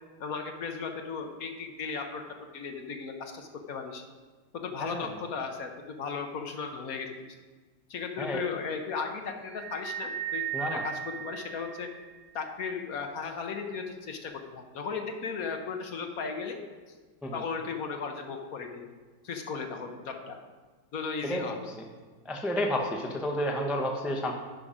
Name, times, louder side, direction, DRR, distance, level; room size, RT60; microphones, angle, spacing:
voice 1, 0.2-2.2 2.5-4.0 4.5-7.1 7.9-11.9 12.3-16.6 16.9-17.0 17.3-18.9 19.2-20.4 20.9-21.7, left 5 dB, 60° left, 4 dB, 1.1 m, -36 dB
voice 2, 4.8-5.1 8.2-8.4 10.5-10.8 17.2-17.4 21.2-21.4 21.8-21.9 22.2-24.3, left 1 dB, ahead, 0 dB, 0.3 m, -31 dB
sound 1, 9.5-12.2, right 9 dB, 70° right, 1.2 m, -36 dB
10.5 x 5.7 x 5.0 m, 1.4 s
omnidirectional pair, 2.0 m